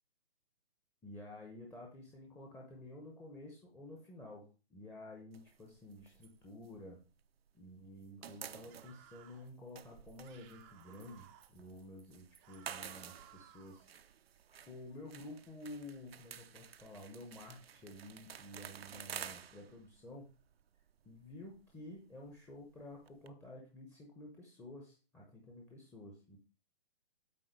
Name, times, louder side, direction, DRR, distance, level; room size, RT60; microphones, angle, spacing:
voice 1, 1.0-7.0 7.5-13.9 14.6-20.3 21.0-26.4, left 1 dB, 5° left, -2 dB, 0.9 m, -51 dB
sound 1, 5.3-7.6 7.8-23.3, right 8 dB, 70° right, 0.7 m, -52 dB
sound 2, 8.7-9.5 10.2-11.5 12.4-13.9, right 11 dB, 15° right, 0.6 m, -60 dB
8.6 x 3.8 x 5.1 m, 0.33 s
hypercardioid pair, 140°, 31 cm